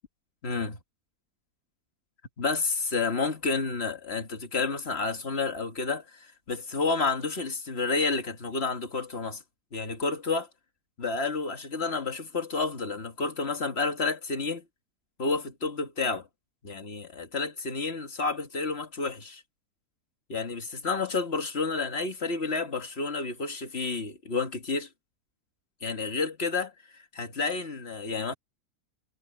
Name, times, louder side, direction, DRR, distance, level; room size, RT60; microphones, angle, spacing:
voice 1, 0.4-0.8 2.4-9.4 9.7-10.5 11.0-14.6 15.2-16.3 16.6-19.4 20.3-24.9 25.8-26.7 27.1-28.3, left 4 dB, 40° left, 1.8 m, -30 dB
omnidirectional pair, 1.7 m